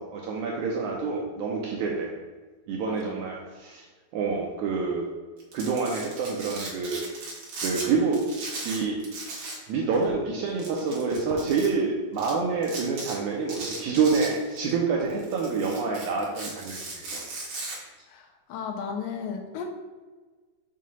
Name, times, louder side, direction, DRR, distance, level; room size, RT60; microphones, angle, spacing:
voice 1, 0.0-2.1 2.7-3.8 4.1-5.1 5.5-7.0 7.6-8.2 8.6-9.0 9.7-17.2, right 4 dB, 80° right, -1 dB, 1.8 m, -27 dB
voice 2, 2.9-3.3 18.1-19.7, left 6 dB, 80° left, 2 dB, 2.4 m, -35 dB
Domestic sounds home sounds, 5.4-7.9 8.1-9.7 9.9-10.0 10.6-11.7 12.2-12.3 12.6-13.1 13.5-14.7 15.1-17.8, right 3 dB, 65° right, 2.4 m, -37 dB
6.3 x 2.8 x 5.3 m, 1.3 s
omnidirectional pair, 4.0 m